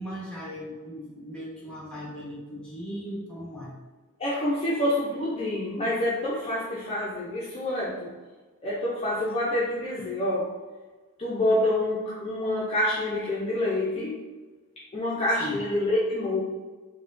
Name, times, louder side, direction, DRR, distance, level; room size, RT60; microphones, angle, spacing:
voice 1, 0.0-3.8 15.3-15.6, equal, 5° left, -6 dB, 1.0 m, -37 dB
voice 2, 4.2-8.1 8.6-10.5 11.2-14.2 14.9-16.4, left 1 dB, 25° left, -7 dB, 0.5 m, -27 dB
4.6 x 2.2 x 2.5 m, 1.3 s
head